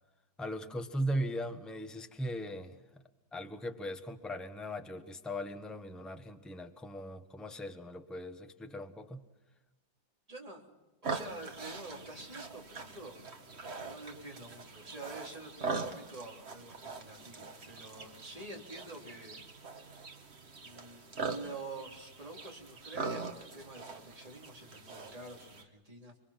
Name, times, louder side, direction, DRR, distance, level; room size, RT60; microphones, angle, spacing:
voice 1, 0.4-3.0 3.3-9.2, equal, ahead, 6 dB, 1.0 m, -39 dB
voice 2, 10.3-10.7 11.0-13.2 13.8-19.4 20.6-26.2, right 2 dB, 20° right, -1 dB, 3.7 m, -47 dB
sound 1, 11.0-25.6, right 4 dB, 35° right, 1.8 m, -42 dB
27.0 x 22.5 x 5.8 m, 1.1 s
omnidirectional pair, 2.0 m